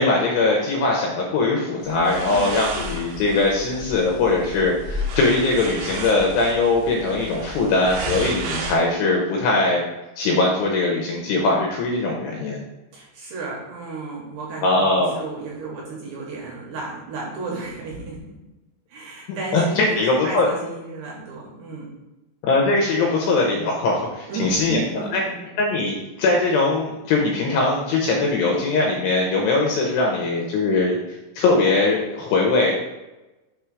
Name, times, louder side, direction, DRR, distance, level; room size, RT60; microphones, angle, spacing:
voice 1, 0.0-9.8 10.2-12.6 14.6-15.2 19.3-20.5 22.4-24.8 25.1-25.2 25.6-31.0 31.4-32.7, left 3 dB, 85° left, -1 dB, 2.5 m, -21 dB
sound 1, 1.9-8.8, right 1 dB, 90° right, 2.2 m, -32 dB
voice 2, 2.3-2.6 12.9-18.3 18.9-21.9 24.3-25.4, right 3 dB, 70° right, -3 dB, 2.7 m, -33 dB
7.0 x 3.1 x 4.7 m, 1.0 s
omnidirectional pair, 5.6 m